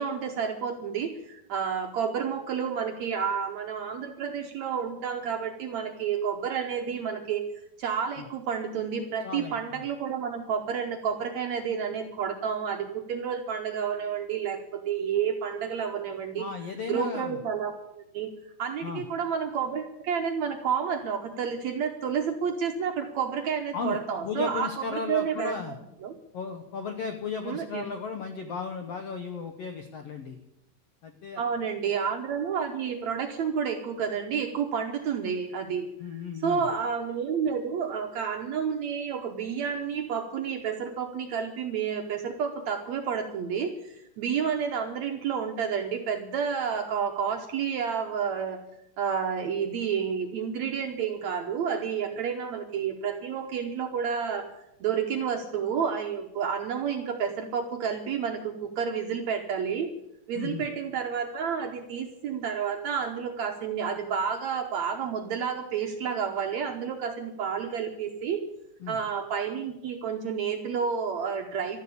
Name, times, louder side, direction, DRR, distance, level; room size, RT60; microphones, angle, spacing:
voice 1, 0.0-7.5 7.8-16.5 16.9-18.3 18.6-25.8 26.0-26.1 27.4-27.8 31.4-35.9 36.4-48.6 49.0-54.5 54.8-59.9 60.3-68.4 68.9-71.8, right 7 dB, 70° right, 3 dB, 1.7 m, -30 dB
voice 2, 9.2-9.5 16.4-17.4 18.8-19.0 23.7-24.0 24.2-25.8 26.3-30.4 31.0-31.4 36.0-36.6 60.3-60.6 68.8-69.0, left 5 dB, 75° left, 6 dB, 1.4 m, -35 dB
13.0 x 11.0 x 8.5 m, 0.86 s
omnidirectional pair, 4.3 m